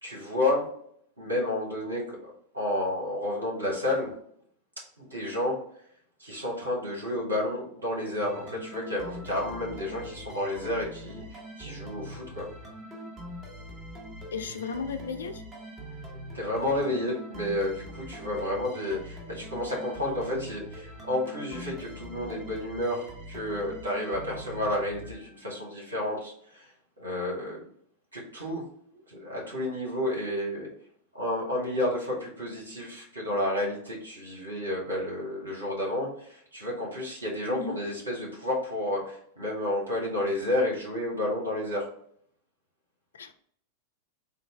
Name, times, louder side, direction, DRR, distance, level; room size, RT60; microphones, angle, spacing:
voice 1, 0.0-0.6 1.2-4.1 5.0-5.6 6.2-12.5 16.3-26.7 27.0-27.6 28.1-28.6 29.1-30.7 31.1-41.8, left 1 dB, 80° right, 1.3 m, -31 dB
sound 1, 8.2-25.7, equal, 20° right, 1.0 m, -43 dB
voice 2, 14.3-15.4 37.5-37.8 43.1-43.3, left 5 dB, 65° left, 0.3 m, -34 dB
3.8 x 2.0 x 3.5 m
figure-of-eight pair, 90°, 0 cm